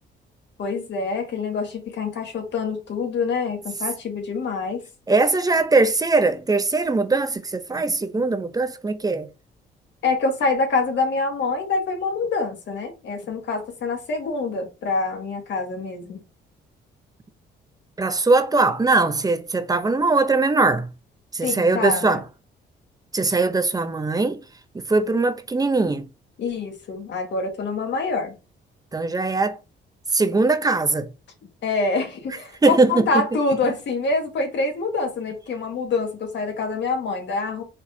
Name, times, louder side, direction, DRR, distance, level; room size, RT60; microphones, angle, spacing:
voice 1, 0.6-4.8 10.0-16.2 21.4-22.2 26.4-28.4 31.6-37.6, left 3 dB, 65° left, 1.7 m, -26 dB
voice 2, 5.1-9.3 18.0-20.9 21.3-22.2 23.1-24.4 24.7-26.1 28.9-29.6 30.1-31.1 32.6-33.1, right 3 dB, 20° right, 0.6 m, -20 dB
4.7 x 3.8 x 2.7 m
cardioid pair, 90°, 20 cm